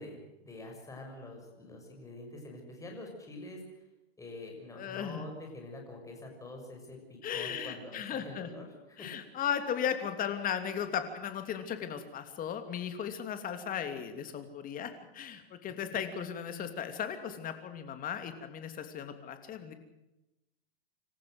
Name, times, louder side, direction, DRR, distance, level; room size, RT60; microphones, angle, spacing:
voice 1, 0.0-3.8 4.2-9.1, left 2 dB, 10° left, 1 dB, 6.5 m, -46 dB
voice 2, 4.8-5.2 7.2-8.5 9.0-19.7, left 8 dB, 25° left, 8 dB, 3.0 m, -36 dB
27.0 x 14.5 x 7.9 m, 0.95 s
hypercardioid pair, 135°, 31 cm